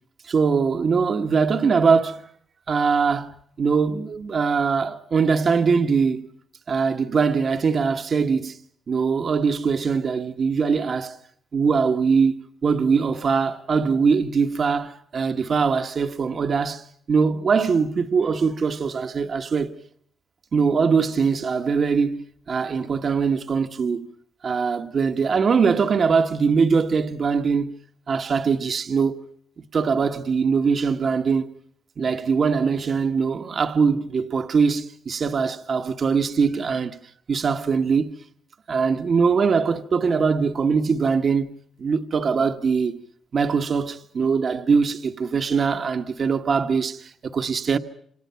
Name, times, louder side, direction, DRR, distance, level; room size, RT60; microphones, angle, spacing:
voice 1, 0.2-2.2 2.7-6.3 6.7-8.6 8.9-11.2 11.5-12.3 12.6-19.7 20.5-24.1 24.4-27.7 28.1-29.2 29.7-31.5 32.0-37.0 37.3-38.2 38.7-41.5 41.8-43.0 43.3-47.8, right 5 dB, 50° right, 1.3 m, -22 dB
28.0 x 26.5 x 5.8 m
cardioid pair, 95°, 0 cm